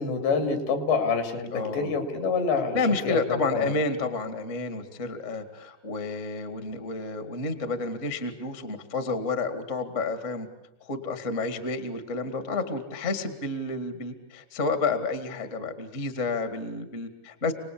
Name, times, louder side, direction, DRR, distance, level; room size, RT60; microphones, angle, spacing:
voice 1, 0.0-3.7, left 4 dB, 75° left, 6 dB, 5.3 m, -27 dB
voice 2, 1.5-1.9 2.7-10.5 10.8-17.5, left 3 dB, 30° left, 8 dB, 1.4 m, -30 dB
29.5 x 20.0 x 8.6 m, 0.88 s
omnidirectional pair, 5.0 m